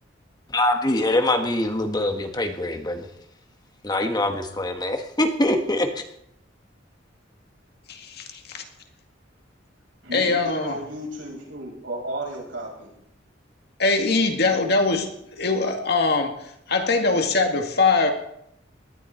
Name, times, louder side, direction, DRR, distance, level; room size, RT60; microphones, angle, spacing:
voice 1, 0.5-3.1 3.8-6.0, left 1 dB, 20° left, 5 dB, 1.4 m, -23 dB
voice 2, 7.9-8.6 10.1-10.8 13.8-15.1 15.4-16.3 16.7-18.1, left 3 dB, 60° left, 4 dB, 2.2 m, -22 dB
voice 3, 10.0-12.9, right 1 dB, 85° right, -3 dB, 7.6 m, -34 dB
19.0 x 12.0 x 4.4 m, 0.74 s
head